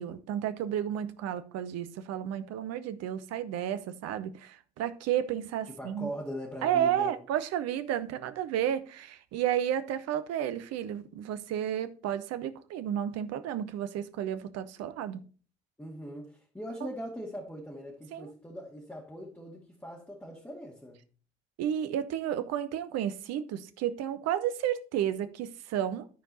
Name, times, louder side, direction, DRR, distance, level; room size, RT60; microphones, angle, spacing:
voice 1, 0.0-6.1 6.6-15.2 16.8-16.9 18.1-18.3 21.6-26.1, right 10 dB, 55° right, 0.8 m, -32 dB
voice 2, 5.7-7.2 15.8-21.0, equal, 5° left, 2.1 m, -41 dB
12.5 x 4.5 x 4.2 m
figure-of-eight pair, 55°, 32 cm